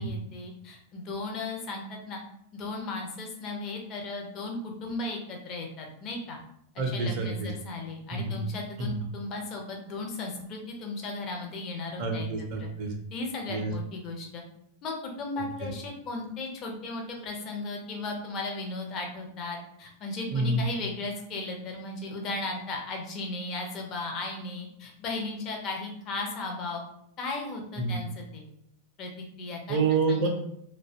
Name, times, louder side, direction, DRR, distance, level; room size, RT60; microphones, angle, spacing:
voice 1, 0.0-2.2 2.5-6.4 6.7-12.3 12.6-12.7 13.1-14.4 14.8-26.8 27.2-28.5 29.0-29.8 30.1-30.3, left 2 dB, 35° left, 1 dB, 0.5 m, -36 dB
voice 2, 6.8-7.5 8.1-8.4 8.8-8.9 12.0-12.9 13.5-13.7 15.4-15.7 20.3-20.6 27.8-28.0 29.7-30.3, right 3 dB, 45° right, 1 dB, 0.4 m, -28 dB
2.5 x 2.1 x 2.5 m, 0.73 s
figure-of-eight pair, 90°, 0 cm